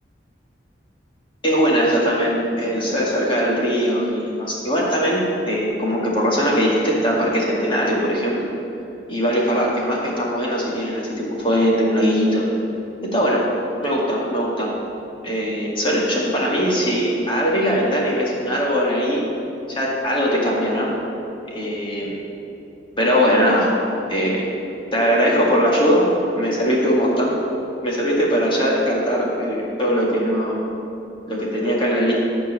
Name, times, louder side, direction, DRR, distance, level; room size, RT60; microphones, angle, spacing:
voice 1, 1.4-8.5 9.1-12.5 13.0-13.4 13.8-14.7 15.2-19.2 19.7-20.9 21.5-22.2 23.0-23.7 24.1-24.4 24.9-26.1 26.3-27.3 27.8-30.6 31.2-32.2, equal, 30° left, -4 dB, 2.1 m, -20 dB
12.0 x 4.6 x 7.2 m, 2.8 s
head